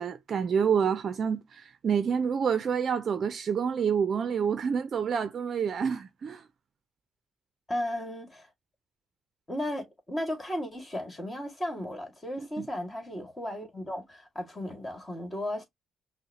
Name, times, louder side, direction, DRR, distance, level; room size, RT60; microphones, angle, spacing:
voice 1, 0.0-6.4 12.4-12.7, right 7 dB, 50° right, 0.5 m, -28 dB
voice 2, 7.7-8.5 9.5-15.7, left 1 dB, 25° left, 1.9 m, -35 dB
5.5 x 2.1 x 2.8 m
cardioid pair, 90°, 0 cm